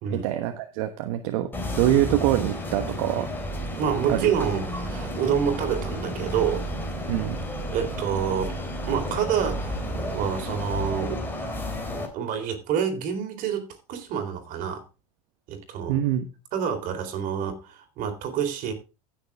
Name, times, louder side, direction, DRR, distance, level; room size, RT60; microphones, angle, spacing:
voice 1, 0.1-3.3 4.1-4.3 7.1-7.4 15.9-16.3, right 13 dB, 65° right, 1.2 m, -25 dB
sound 1, 1.5-12.1, equal, 10° left, 3.2 m, -32 dB
voice 2, 3.8-6.7 7.7-9.8 10.1-11.2 11.9-14.8 15.5-15.9 16.5-18.7, right 8 dB, 50° right, 3.6 m, -28 dB
15.5 x 6.8 x 3.5 m
supercardioid pair, 115°, 18 cm